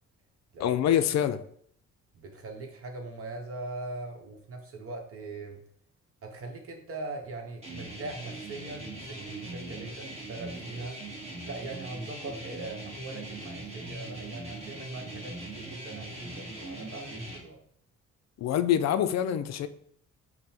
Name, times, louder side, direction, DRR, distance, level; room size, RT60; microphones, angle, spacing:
voice 1, 0.6-1.4 18.4-19.7, left 10 dB, 60° left, 0.4 m, -25 dB
voice 2, 2.1-5.6 6.2-11.0 11.4-17.6, right 2 dB, 50° right, 1.1 m, -41 dB
sound 1, 7.6-17.4, right 1 dB, 20° right, 1.4 m, -41 dB
5.3 x 2.2 x 4.4 m
cardioid pair, 90°, 30 cm